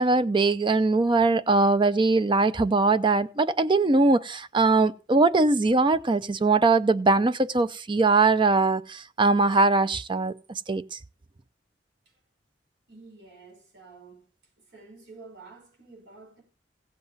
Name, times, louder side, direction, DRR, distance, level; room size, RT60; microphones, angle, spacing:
voice 1, 0.0-11.0, right 3 dB, 25° right, 0.5 m, -21 dB
voice 2, 12.9-14.3 14.6-16.4, right 3 dB, 70° right, 5.3 m, -49 dB
16.0 x 7.6 x 4.1 m
head